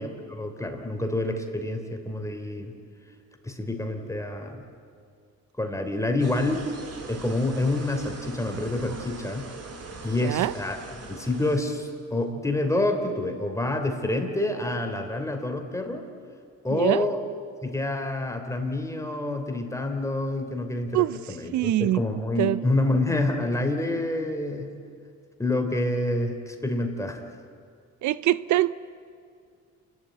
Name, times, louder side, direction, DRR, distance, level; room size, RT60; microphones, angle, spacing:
voice 1, 0.0-2.7 3.4-4.6 5.6-6.7 7.1-9.4 10.0-10.8 11.1-16.0 16.6-17.2 17.6-24.7 25.4-27.2, left 2 dB, 10° left, 4 dB, 3.3 m, -27 dB
sound 1, 6.2-11.6, right 3 dB, 55° right, 3.4 m, -41 dB
voice 2, 10.2-10.5 16.7-17.1 20.9-21.2 21.5-22.0 22.4-22.6 28.0-28.7, right 15 dB, 70° right, 17 dB, 0.5 m, -23 dB
29.0 x 12.5 x 9.2 m, 2.3 s
cardioid pair, 90°, 30 cm